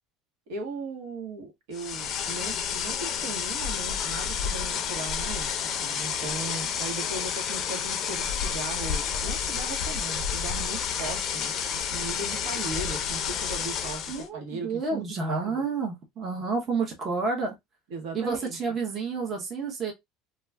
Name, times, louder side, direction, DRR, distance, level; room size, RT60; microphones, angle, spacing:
voice 1, 0.5-5.5 5.8-11.6 11.9-15.6 17.9-18.6, right 4 dB, 80° right, 1.1 m, -38 dB
sound 1, 1.7-14.3, left 7 dB, 35° left, 0.5 m, -30 dB
voice 2, 14.1-17.5 18.1-19.9, right 4 dB, 25° right, 0.7 m, -30 dB
2.3 x 2.3 x 3.3 m
cardioid pair, 160°, 0 cm